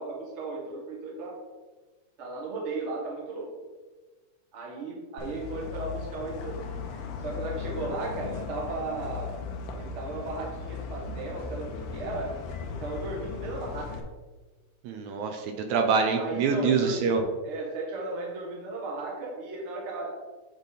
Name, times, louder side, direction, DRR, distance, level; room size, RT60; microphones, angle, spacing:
voice 1, 0.0-1.4 2.2-3.5 4.5-6.6 7.2-9.3 9.8-12.3 12.8-14.0 16.1-20.1, right 3 dB, 35° right, -2 dB, 1.1 m, -35 dB
sound 1, 5.2-14.0, left 6 dB, 80° left, 1.5 m, -37 dB
voice 2, 14.8-17.2, right 5 dB, 75° right, 4 dB, 2.0 m, -25 dB
8.1 x 4.0 x 4.1 m, 1.3 s
omnidirectional pair, 3.5 m